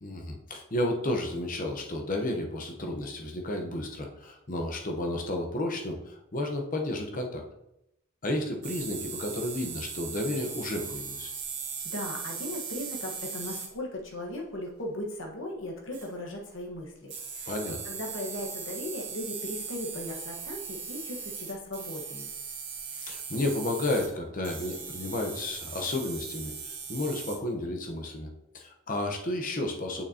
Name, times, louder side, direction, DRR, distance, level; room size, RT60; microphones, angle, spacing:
voice 1, 0.0-7.4 8.2-11.3 17.5-17.8 22.9-30.0, left 1 dB, 40° left, 2 dB, 0.9 m, -32 dB
sound 1, 8.6-13.7 15.9-16.1 17.1-24.1 24.4-27.4, right 6 dB, 50° right, 1.8 m, -39 dB
voice 2, 11.8-17.5 17.8-22.3, left 1 dB, 60° left, 0 dB, 1.3 m, -37 dB
6.8 x 5.9 x 2.8 m, 0.86 s
head